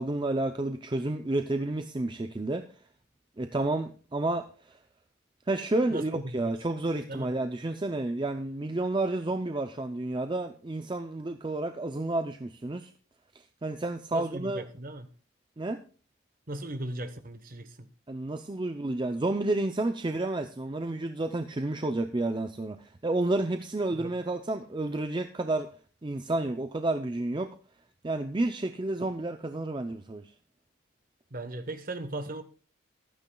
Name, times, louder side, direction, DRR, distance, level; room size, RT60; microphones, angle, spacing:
voice 1, 0.0-2.7 3.4-4.8 5.5-12.9 13.3-14.6 15.6-15.8 18.1-25.7 26.0-27.5 28.0-30.2, right 2 dB, 20° right, 0.4 m, -30 dB
voice 2, 5.9-6.5 7.1-7.3 14.1-15.1 16.5-17.9 23.9-24.1 31.3-32.4, right 1 dB, 40° right, 1.1 m, -37 dB
15.0 x 12.0 x 2.3 m
head